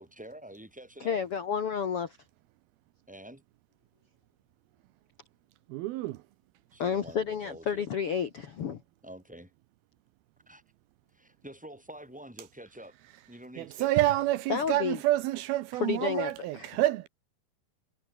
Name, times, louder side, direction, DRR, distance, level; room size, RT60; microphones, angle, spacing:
voice 1, 0.0-1.2 3.1-3.4 6.7-7.8 9.0-9.5 10.5-10.6 11.1-12.9 13.3-13.9, right 1 dB, ahead, 3.4 m, -47 dB
voice 2, 1.0-2.2 6.8-8.8 14.5-15.0 15.8-16.7, left 7 dB, 55° left, 1.6 m, -31 dB
voice 3, 5.7-6.2 13.6-17.1, right 15 dB, 80° right, 2.5 m, -28 dB
omnidirectional pair, 4.7 m